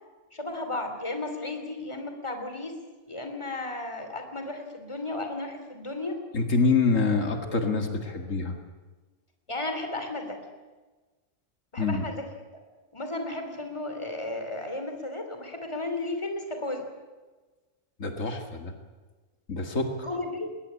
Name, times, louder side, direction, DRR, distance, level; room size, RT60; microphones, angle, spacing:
voice 1, 0.3-2.8 3.0-6.2 9.5-10.4 11.7-12.3 12.9-16.9 20.0-20.5, left 2 dB, 20° left, 6 dB, 3.1 m, -34 dB
voice 2, 6.3-8.6 11.8-12.1 18.0-18.7 19.5-19.9, left 4 dB, 80° left, 5 dB, 2.5 m, -26 dB
21.5 x 19.0 x 8.5 m, 1.3 s
omnidirectional pair, 1.3 m